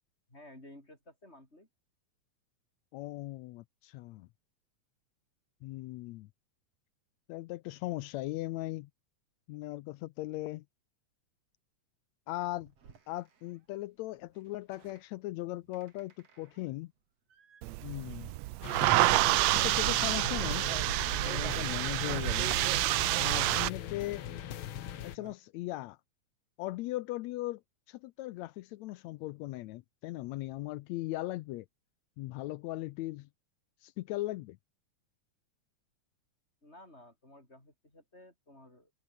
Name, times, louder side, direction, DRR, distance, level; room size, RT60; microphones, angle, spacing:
voice 1, 0.3-1.7 36.6-38.9, left 1 dB, 20° left, 8.0 m, -54 dB
voice 2, 2.9-4.3 5.6-6.3 7.3-8.9 9.5-10.6 12.3-12.7 13.1-16.9 17.8-18.3 19.5-20.7 21.2-22.5 23.2-24.3 25.0-26.0 26.6-27.6 27.9-31.7 32.2-33.3 33.8-34.6, left 17 dB, 80° left, 1.7 m, -38 dB
sound 1, 12.4-13.0 14.7-15.0 15.7-16.6 17.3-17.6 18.7-19.2 19.8-23.6 23.9-24.5 24.7-25.3, right 6 dB, 55° right, 3.9 m, -45 dB
sound 2, 17.6-23.7, right 18 dB, 80° right, 1.7 m, -28 dB
sound 3, 18.6-25.2, left 11 dB, 60° left, 1.5 m, -42 dB
omnidirectional pair, 3.4 m